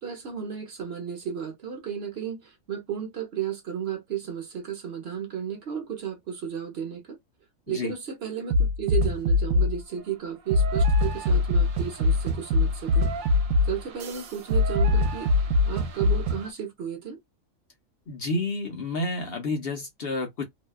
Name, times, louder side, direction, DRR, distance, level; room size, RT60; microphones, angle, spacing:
voice 1, 0.0-7.2 7.7-13.1 13.6-15.3 15.6-17.2, right 8 dB, 55° right, 0.9 m, -33 dB
sound 1, 8.5-9.8 10.5-16.5, left 2 dB, 80° right, 1.0 m, -23 dB
voice 2, 18.1-20.4, left 2 dB, 55° left, 0.9 m, -30 dB
2.7 x 2.2 x 2.2 m
omnidirectional pair, 1.4 m